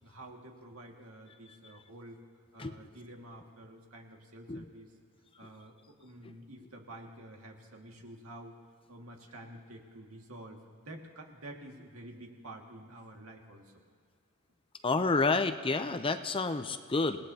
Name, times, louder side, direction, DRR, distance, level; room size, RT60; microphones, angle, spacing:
voice 1, 0.0-2.2 2.5-4.9 5.4-8.5 8.9-13.7, right 1 dB, 75° right, 1 dB, 2.0 m, -49 dB
voice 2, 14.8-17.2, left 3 dB, 25° left, 9 dB, 0.6 m, -29 dB
27.0 x 18.5 x 2.8 m, 2.3 s
head